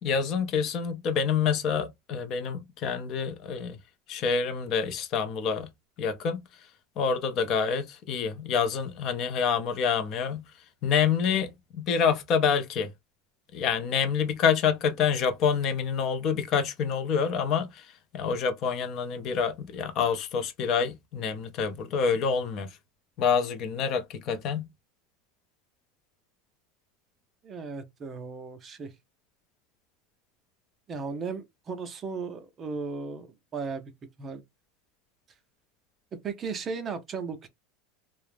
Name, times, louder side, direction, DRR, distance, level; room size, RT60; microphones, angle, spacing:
voice 1, 0.0-3.8 4.1-5.7 6.0-6.4 7.0-10.5 10.8-12.9 13.5-22.8 23.2-24.7, left 6 dB, 40° left, 0.5 m, -27 dB
voice 2, 27.4-28.9 30.9-33.9 34.2-34.4 36.1-37.5, right 5 dB, 25° right, 0.5 m, -36 dB
2.3 x 2.0 x 3.2 m
supercardioid pair, 145°, 0 cm